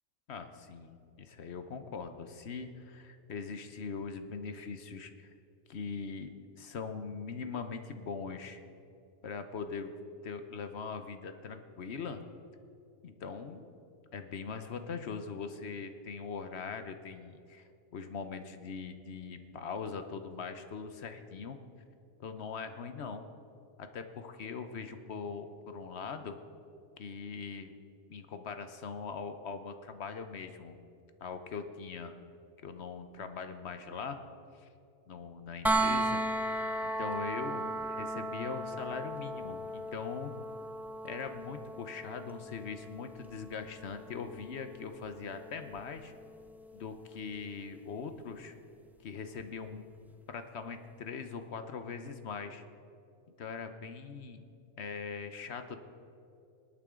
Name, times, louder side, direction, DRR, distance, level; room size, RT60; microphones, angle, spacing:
voice 1, 0.3-5.3 5.7-8.6 9.2-9.9 10.2-12.2 13.0-13.7 14.1-21.6 22.2-23.2 23.8-26.4 27.0-27.7 28.1-30.8 31.2-32.2 32.6-34.2 34.6-34.7 35.1-36.2 36.8-40.3 41.0-46.1 46.7-48.5 49.0-49.9 50.3-52.6 53.4-54.4 54.8-55.8, left 5 dB, 65° left, 8 dB, 1.1 m, -41 dB
sound 1, 35.6-47.5 49.4-49.5, right 1 dB, ahead, 0.4 m, -36 dB
26.5 x 8.9 x 3.7 m, 2.6 s
omnidirectional pair, 1.2 m